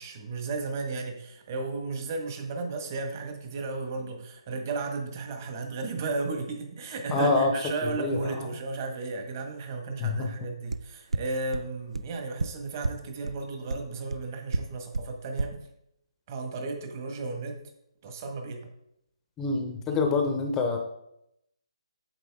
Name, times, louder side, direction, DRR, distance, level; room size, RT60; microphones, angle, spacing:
voice 1, 0.0-15.6 16.3-17.6 18.0-18.7, right 3 dB, 30° right, 4 dB, 1.5 m, -34 dB
voice 2, 7.1-7.5 7.9-8.5 10.0-10.3 19.4-20.8, left 3 dB, 10° left, 4 dB, 0.7 m, -26 dB
sound 1, 10.7-10.8 11.1-11.2 11.5-11.6 11.9-12.0 12.4-12.5 12.8-12.9 13.3-13.4 13.7-13.8 14.1-14.2 14.5-14.6 14.9-15.0 15.4-15.5, right 3 dB, 80° right, 0.5 m, -27 dB
8.8 x 7.1 x 3.5 m, 0.79 s
hypercardioid pair, 160°, 3 cm